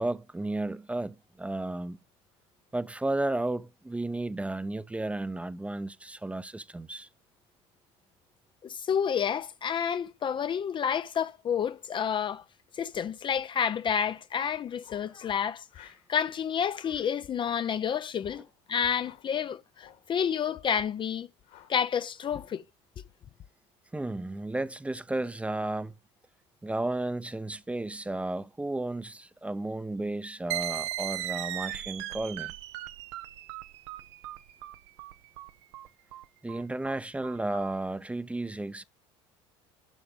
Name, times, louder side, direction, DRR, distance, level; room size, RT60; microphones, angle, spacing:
voice 1, 0.0-2.0 2.7-7.1 23.9-25.9 26.6-32.5 36.4-38.8, right 2 dB, 10° right, 0.6 m, -33 dB
voice 2, 8.6-12.4 12.7-21.3 21.7-22.6, left 8 dB, 35° left, 0.5 m, -30 dB
sound 1, 13.9-14.3 14.8-15.2 15.7-16.1 16.5-16.9 17.4-17.7 18.2-18.5 19.0-19.3 19.7-20.1 20.6-21.0 21.4-21.8 22.2-22.6, left 11 dB, 70° left, 2.5 m, -55 dB
sound 2, 30.5-37.7, right 15 dB, 85° right, 0.7 m, -37 dB
11.5 x 6.1 x 5.1 m
supercardioid pair, 90°, 14 cm